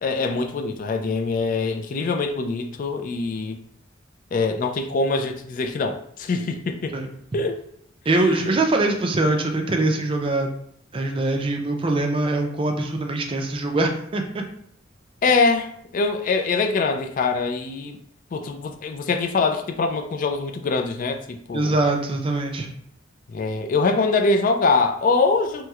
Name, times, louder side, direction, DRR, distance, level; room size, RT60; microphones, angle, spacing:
voice 1, 0.0-3.6 4.3-7.0 7.3-7.6 8.1-8.2 15.2-18.0 18.3-21.7 23.3-25.7, left 3 dB, 45° left, 5 dB, 0.3 m, -23 dB
voice 2, 8.1-10.5 10.9-14.4 21.5-22.7, right 2 dB, 25° right, 3 dB, 0.4 m, -23 dB
3.1 x 3.0 x 2.3 m, 0.67 s
head